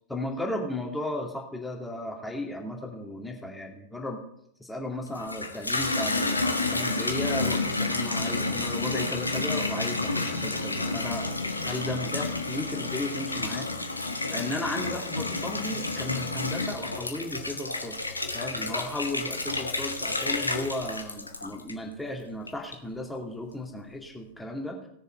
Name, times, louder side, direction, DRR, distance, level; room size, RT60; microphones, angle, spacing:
voice 1, 0.1-4.2 4.6-11.3 11.6-18.0 18.3-24.8, left 1 dB, 5° left, 0 dB, 2.3 m, -35 dB
Water tap faucet / Bathtub (filling or washing), 5.1-22.0 22.5-23.0, left 3 dB, 85° left, 1.1 m, -30 dB
18.0 x 6.7 x 4.5 m, 0.73 s
figure-of-eight pair, 90°, 0 cm